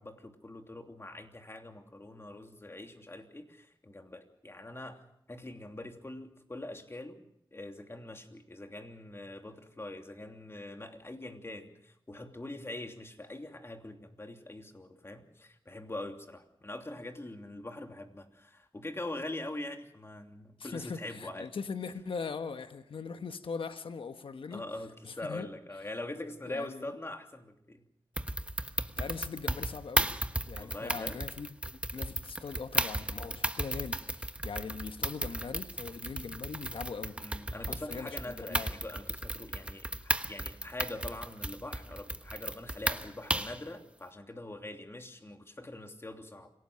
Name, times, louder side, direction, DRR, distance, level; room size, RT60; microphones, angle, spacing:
voice 1, 0.0-5.0 5.3-7.2 7.5-21.5 24.5-27.8 30.6-31.2 37.2-46.5, left 1 dB, 25° left, 4 dB, 3.0 m, -43 dB
voice 2, 20.6-24.6 25.0-25.5 26.5-26.9 29.0-30.1 30.5-37.2 37.7-38.7, left 5 dB, 70° left, 9 dB, 1.2 m, -41 dB
sound 1, 28.2-43.6, right 1 dB, 10° right, 1.2 m, -35 dB
26.5 x 17.5 x 6.4 m, 0.73 s
cardioid pair, 65°, 9 cm